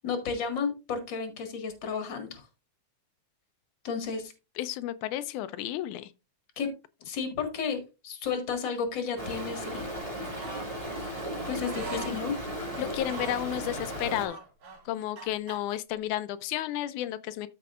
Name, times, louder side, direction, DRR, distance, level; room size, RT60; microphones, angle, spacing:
voice 1, 0.0-2.4 3.8-4.3 6.6-6.7 7.1-9.9 11.5-12.3, left 5 dB, 40° left, 2.3 m, -32 dB
voice 2, 4.6-6.1 11.9-12.0 12.8-14.4 14.9-17.5, left 13 dB, 90° left, 2.1 m, -32 dB
Stream, 9.2-14.3, right 1 dB, 10° right, 2.8 m, -36 dB
sound 1, 10.3-10.7 11.6-12.2 13.0-13.5 14.2-15.6, right 3 dB, 60° right, 5.1 m, -42 dB
13.5 x 5.8 x 2.4 m
omnidirectional pair, 3.4 m